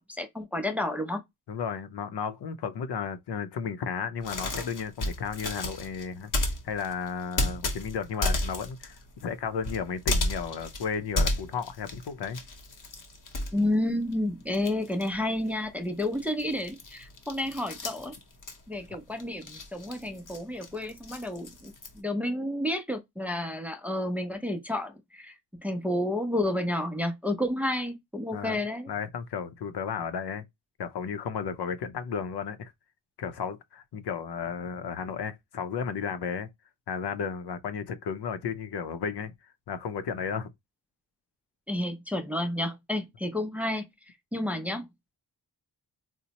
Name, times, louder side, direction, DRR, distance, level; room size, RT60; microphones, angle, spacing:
voice 1, 0.1-1.2 13.5-18.1 18.7-25.3 25.6-28.9 41.7-43.9 44.3-44.9, left 1 dB, 5° right, 0.4 m, -30 dB
voice 2, 1.5-6.3 6.6-12.4 28.3-28.6 28.9-30.4 30.8-32.7 33.2-36.5 36.9-39.3 39.7-40.5, left 6 dB, 75° left, 0.6 m, -33 dB
sound 1, 4.2-14.2 14.5-22.0, left 1 dB, 50° left, 0.9 m, -33 dB
4.0 x 2.1 x 2.8 m
wide cardioid pair, 155°, 40 cm